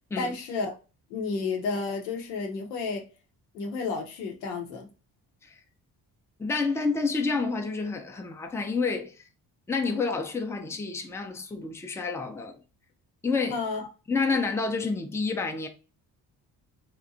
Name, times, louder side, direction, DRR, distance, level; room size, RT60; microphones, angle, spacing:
voice 1, 0.2-0.7 1.1-3.1 3.5-4.9 13.5-13.9, left 4 dB, 85° left, 0.7 m, -31 dB
voice 2, 6.4-9.2 9.7-12.6 13.2-13.6 14.1-15.7, left 4 dB, 5° left, 0.5 m, -29 dB
2.7 x 2.2 x 2.5 m
hypercardioid pair, 45°, 49 cm